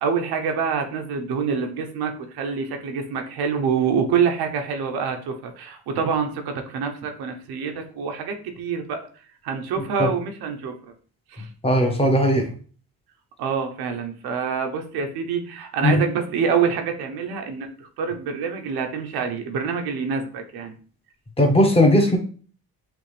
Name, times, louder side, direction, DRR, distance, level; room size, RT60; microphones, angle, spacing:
voice 1, 0.0-9.1 9.4-10.7 11.3-11.5 13.4-17.7 18.0-20.7, right 6 dB, 85° right, 5 dB, 0.9 m, -26 dB
voice 2, 11.6-12.4 15.8-16.0 21.4-22.2, equal, 15° left, 3 dB, 1.2 m, -17 dB
6.0 x 2.5 x 3.3 m, 0.42 s
cardioid pair, 85°, 37 cm